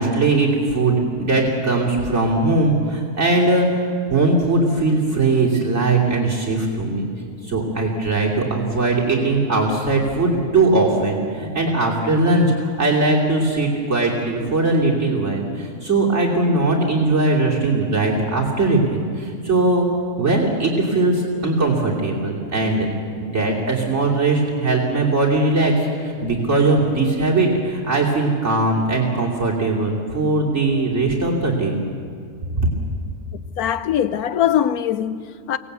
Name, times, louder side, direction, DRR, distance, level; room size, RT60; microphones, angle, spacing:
voice 1, 0.0-3.8 4.1-7.0 7.4-19.9 20.2-22.9 23.2-25.7 26.0-31.8 32.6-32.7, right 2 dB, 45° right, 3.3 m, -20 dB
voice 2, 33.6-35.6, left 10 dB, 75° left, 1.2 m, -21 dB
23.5 x 18.0 x 8.2 m
omnidirectional pair, 1.6 m